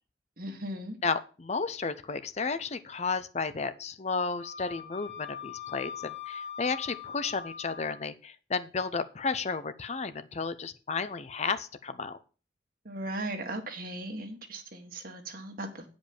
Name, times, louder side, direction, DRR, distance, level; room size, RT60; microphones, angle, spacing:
voice 1, 0.4-1.0 12.9-15.8, right 1 dB, 55° right, 5 dB, 1.8 m, -37 dB
voice 2, 1.0-12.2, left 4 dB, 40° left, 12 dB, 0.6 m, -33 dB
Wind instrument woodwind instrument, 4.4-8.0, left 7 dB, 85° left, 2.6 m, -41 dB
9.1 x 5.2 x 7.0 m, 0.35 s
head